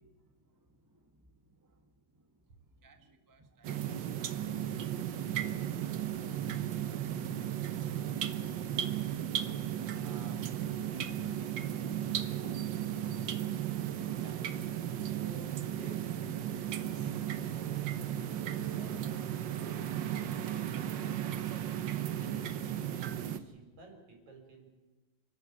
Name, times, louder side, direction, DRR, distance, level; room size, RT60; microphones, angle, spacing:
voice 1, 0.2-6.1, right 2 dB, 15° right, 5 dB, 0.7 m, -65 dB
sound 1, 3.6-23.4, right 10 dB, 90° right, 1.0 m, -35 dB
voice 2, 9.9-24.8, right 2 dB, 70° right, 3 dB, 6.1 m, -54 dB
28.5 x 12.5 x 8.4 m, 1.2 s
omnidirectional pair, 3.5 m